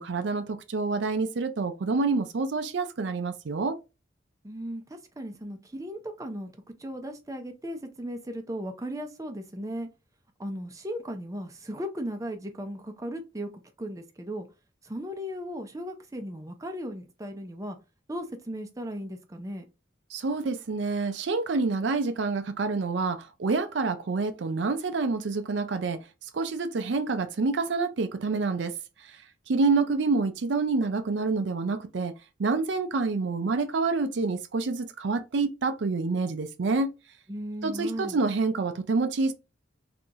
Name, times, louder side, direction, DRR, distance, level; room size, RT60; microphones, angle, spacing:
voice 1, 0.0-3.8 20.1-26.0 26.3-28.7 29.5-32.1 32.4-36.9 37.6-39.3, right 3 dB, 70° right, 0.5 m, -27 dB
voice 2, 4.4-6.5 6.8-9.9 10.4-14.5 14.8-17.8 18.1-19.6 37.3-38.2, equal, 15° right, 0.6 m, -36 dB
3.8 x 2.8 x 2.5 m
head